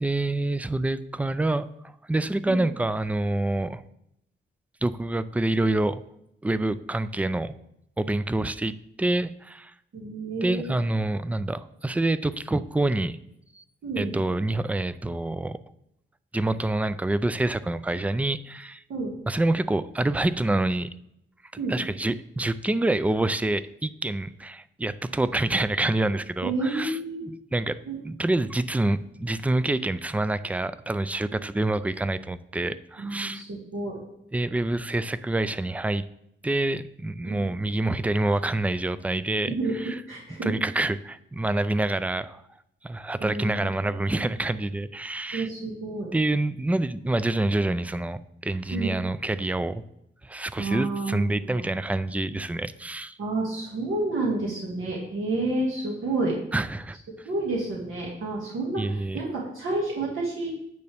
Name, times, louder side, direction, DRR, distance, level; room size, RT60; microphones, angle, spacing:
voice 1, 0.0-1.7 2.1-3.8 4.8-6.0 6.4-7.5 8.0-9.7 10.4-13.2 13.6-13.7 14.0-15.6 16.3-18.8 19.3-20.9 21.7-27.8 28.0-33.4 34.3-36.0 36.4-40.0 40.4-42.4 42.8-45.5 46.1-49.8 50.2-53.2 56.5-57.0 58.8-59.2, right 2 dB, 5° right, 14 dB, 0.3 m, -27 dB
voice 2, 9.9-10.7 13.8-14.2 18.9-19.1 21.6-21.8 26.4-27.2 27.9-28.0 33.0-34.0 37.2-37.5 39.5-39.8 40.1-40.5 43.2-43.7 44.2-44.3 45.3-46.1 48.7-49.0 50.6-51.6 53.2-56.4 57.3-60.5, right 2 dB, 80° right, -4 dB, 1.9 m, -30 dB
9.4 x 6.5 x 3.4 m, 0.78 s
wide cardioid pair, 110°, 20 cm